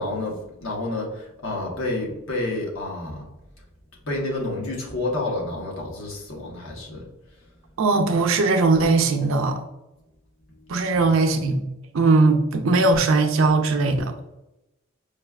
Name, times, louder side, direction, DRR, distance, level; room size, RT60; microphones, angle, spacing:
voice 1, 0.0-3.3 4.0-7.0, left 2 dB, 85° left, -1 dB, 1.0 m, -29 dB
voice 2, 7.8-9.6 10.7-11.6 11.9-14.1, right 3 dB, 85° right, 5 dB, 0.5 m, -19 dB
4.9 x 2.3 x 2.3 m, 0.92 s
head